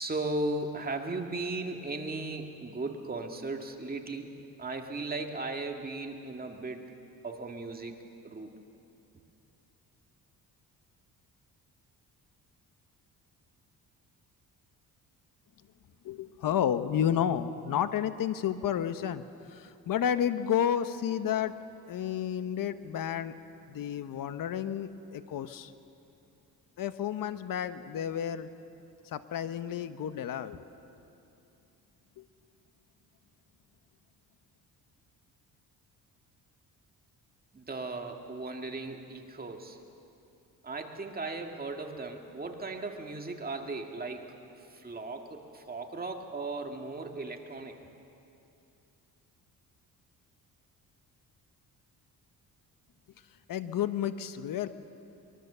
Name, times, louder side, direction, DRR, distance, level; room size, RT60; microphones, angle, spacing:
voice 1, 0.0-4.3 4.6-6.9 7.2-7.9 8.2-8.5 37.5-39.8 40.6-44.3 44.7-47.8, right 2 dB, 25° right, 3 dB, 1.9 m, -36 dB
voice 2, 16.0-19.2 19.5-21.5 21.9-23.3 23.7-25.7 26.8-28.5 29.1-30.6 32.2-32.3 53.5-54.7, left 9 dB, 65° left, 11 dB, 1.1 m, -31 dB
24.0 x 22.5 x 6.8 m, 2.8 s
cardioid pair, 115°, 35 cm